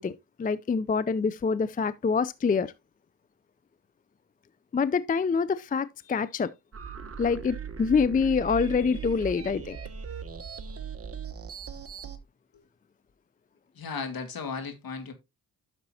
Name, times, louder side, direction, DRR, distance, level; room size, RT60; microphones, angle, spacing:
voice 1, 0.0-2.7 4.7-6.5 7.2-9.8, left 5 dB, 20° left, 0.4 m, -26 dB
sound 1, 6.7-12.2, right 6 dB, 35° right, 1.2 m, -39 dB
voice 2, 13.7-15.1, left 5 dB, 60° left, 2.2 m, -35 dB
10.5 x 6.7 x 2.8 m
cardioid pair, 70°, 39 cm